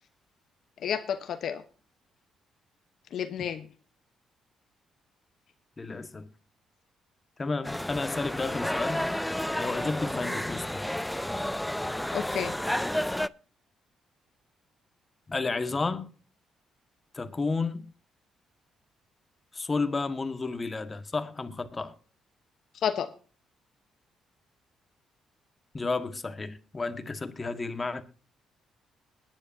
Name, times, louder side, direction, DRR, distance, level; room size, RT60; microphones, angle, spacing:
voice 1, 0.8-1.6 3.1-3.6 12.1-12.5 22.8-23.1, left 8 dB, 65° left, 1.0 m, -30 dB
voice 2, 5.8-6.3 7.4-9.1 9.6-10.8 11.8-11.9 15.3-16.1 17.1-17.9 19.5-21.9 25.7-28.0, left 3 dB, 25° left, 1.6 m, -32 dB
sound 1, 7.6-13.3, left 1 dB, 5° left, 0.5 m, -31 dB
21.5 x 9.9 x 2.7 m
cardioid pair, 90°, 0 cm